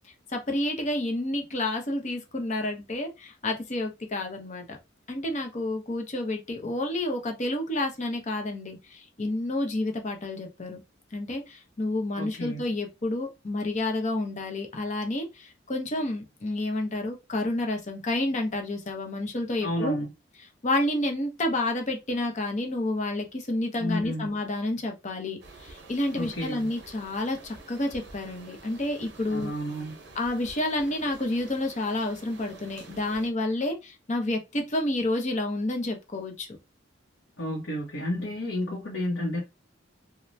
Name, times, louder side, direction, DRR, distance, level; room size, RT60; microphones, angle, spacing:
voice 1, 0.3-4.8 5.1-10.8 11.1-19.9 20.6-29.5 30.1-36.5, left 1 dB, 40° left, 0.7 m, -30 dB
voice 2, 12.2-12.6 19.6-20.1 23.8-24.3 26.1-26.7 29.3-30.0 37.4-39.4, left 1 dB, 70° left, 0.9 m, -31 dB
sound 1, 25.4-33.3, right 3 dB, 60° right, 0.7 m, -49 dB
3.1 x 2.2 x 2.6 m
head